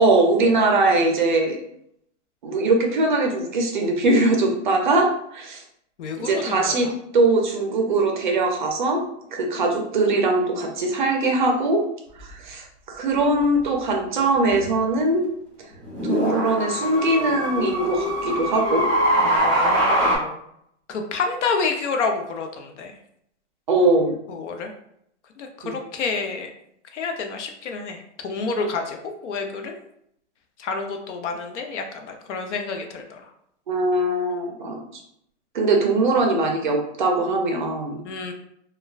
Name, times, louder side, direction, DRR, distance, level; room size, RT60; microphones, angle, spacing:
voice 1, 0.0-1.6 2.4-5.6 6.2-9.0 9.3-11.8 12.2-15.2 16.0-18.9 23.7-24.2 25.6-25.7 33.7-35.0 35.5-38.0, right 2 dB, 45° right, 2 dB, 0.4 m, -21 dB
voice 2, 6.0-6.9 19.2-20.4 20.9-22.9 24.3-24.7 25.4-26.5 26.9-29.8 30.6-33.3 38.0-38.3, left 4 dB, 75° left, 4 dB, 0.6 m, -29 dB
sound 1, 12.2-12.3 14.5-14.7 15.7-20.2, right 1 dB, 10° left, 0.7 m, -23 dB
Dog, 15.9-19.4, left 4 dB, 55° left, 1.2 m, -33 dB
3.2 x 2.2 x 2.3 m, 0.73 s
supercardioid pair, 180°, 36 cm